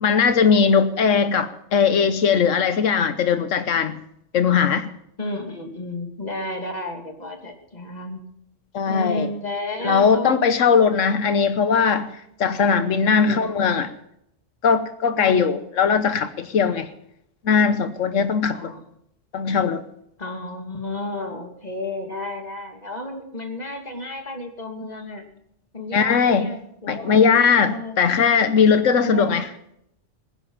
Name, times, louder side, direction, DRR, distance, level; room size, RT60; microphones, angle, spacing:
voice 1, 0.0-4.0 4.3-4.9 8.7-9.3 9.8-12.1 12.4-13.9 14.6-16.9 17.4-18.7 19.3-19.8 25.9-26.5 26.9-29.5, left 6 dB, 85° left, 11 dB, 1.3 m, -19 dB
voice 2, 5.2-8.2 8.9-10.5 13.1-13.5 15.1-15.6 18.5-18.9 20.2-25.3 25.7-27.2 27.6-28.0 28.9-29.4, left 1 dB, 35° left, 3 dB, 2.8 m, -32 dB
20.5 x 10.5 x 5.7 m, 0.75 s
omnidirectional pair, 1.3 m